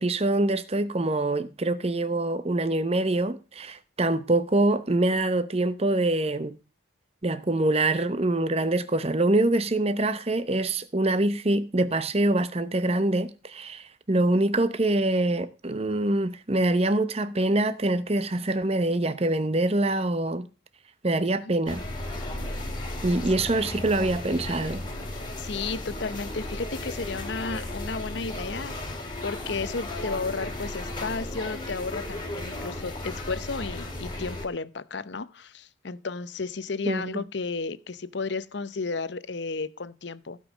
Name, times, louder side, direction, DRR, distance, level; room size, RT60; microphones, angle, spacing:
voice 1, 0.0-6.6 7.2-20.5 21.0-21.8 23.0-24.8 36.9-37.1, right 2 dB, 30° right, 0.8 m, -25 dB
voice 2, 21.1-21.5 25.4-40.4, left 4 dB, 60° left, 0.7 m, -33 dB
sound 1, 21.7-34.5, left 1 dB, 25° left, 2.2 m, -35 dB
16.0 x 5.5 x 6.2 m
head